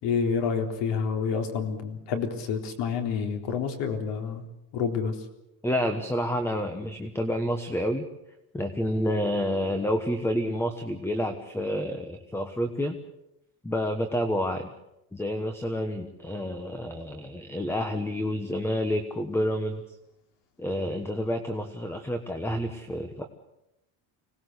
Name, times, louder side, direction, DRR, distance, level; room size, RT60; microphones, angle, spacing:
voice 1, 0.0-4.4 4.7-5.2, left 6 dB, 75° left, 5 dB, 4.0 m, -28 dB
voice 2, 5.6-8.0 8.5-13.0 13.6-14.7 15.1-19.8 20.6-23.3, equal, 5° left, 8 dB, 1.2 m, -29 dB
25.5 x 18.5 x 8.1 m, 0.88 s
cardioid pair, 165°, 43 cm